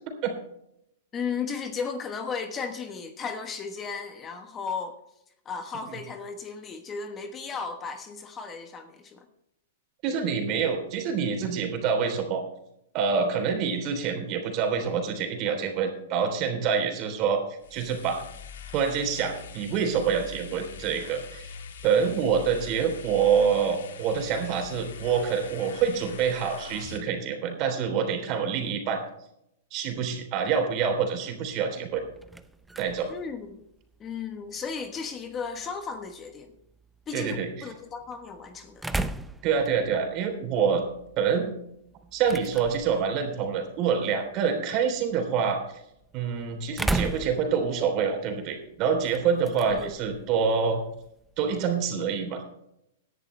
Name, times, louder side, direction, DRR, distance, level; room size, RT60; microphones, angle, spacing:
voice 1, 1.1-5.0 5.4-9.3 33.1-33.6 34.0-36.5 37.1-39.1 49.7-50.0, left 5 dB, 20° left, 7 dB, 1.2 m, -35 dB
voice 2, 10.0-12.4 12.9-17.4 17.7-18.2 18.7-21.5 21.8-29.0 29.7-32.0 32.8-33.1 37.1-37.7 39.4-40.8 41.2-41.5 42.1-45.6 46.1-50.8 51.4-52.4, right 6 dB, 35° right, 4 dB, 3.4 m, -26 dB
sound 1, 17.6-27.0, left 6 dB, 75° left, 2.2 m, -43 dB
sound 2, 31.9-51.8, right 2 dB, 5° right, 0.6 m, -39 dB
17.5 x 11.0 x 3.3 m, 0.79 s
hypercardioid pair, 145°, 0 cm